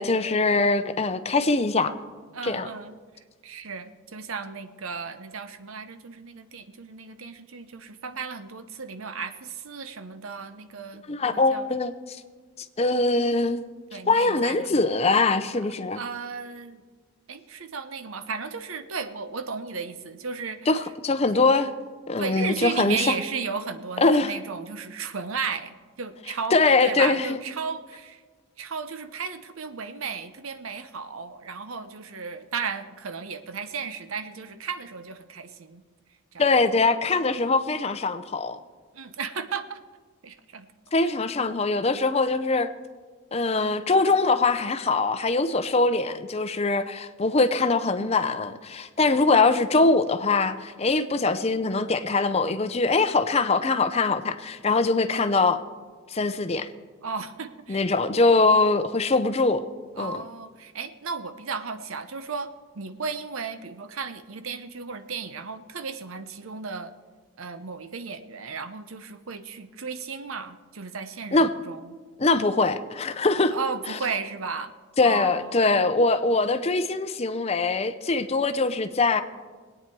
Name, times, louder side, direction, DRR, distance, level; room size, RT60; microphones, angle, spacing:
voice 1, 0.0-1.9 2.4-2.7 11.1-12.2 12.8-13.6 14.1-16.0 20.7-21.7 22.1-23.1 24.0-24.3 26.5-27.4 36.4-38.6 40.9-42.7 43.3-55.6 56.1-56.7 57.7-59.6 60.0-60.2 71.3-71.5 72.2-73.5 75.0-79.2, left 3 dB, 30° left, 0.6 m, -22 dB
voice 2, 2.3-3.0 3.4-11.7 13.9-14.8 15.9-16.8 17.3-20.7 22.2-28.2 28.6-35.8 36.3-36.4 38.9-39.8 40.2-40.7 41.0-41.1 57.0-58.0 60.0-66.9 67.4-71.9 73.5-74.7 75.0-75.5, right 5 dB, 80° right, 0.8 m, -34 dB
21.0 x 8.9 x 4.6 m
head